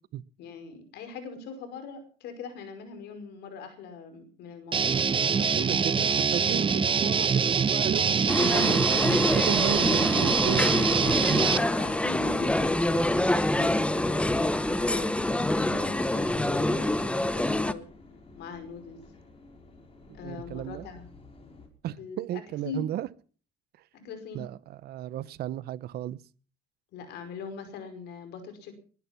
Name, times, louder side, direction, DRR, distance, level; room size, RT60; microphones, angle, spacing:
voice 1, 0.4-4.9 10.6-13.2 13.5-15.1 15.5-17.9 18.4-19.0 20.1-21.1 22.0-22.9 23.9-24.4 26.9-28.7, left 5 dB, 80° left, 5.4 m, -41 dB
Guitar, 4.7-11.6, right 6 dB, 30° right, 1.0 m, -24 dB
voice 2, 5.1-11.4 20.2-20.9 21.8-23.1 24.3-26.2, right 12 dB, 70° right, 0.9 m, -34 dB
sound 1, 8.1-21.7, left 2 dB, 35° left, 5.0 m, -49 dB
sound 2, 8.3-17.7, left 1 dB, 5° left, 0.9 m, -26 dB
21.5 x 11.0 x 5.9 m
cardioid pair, 110°, 17 cm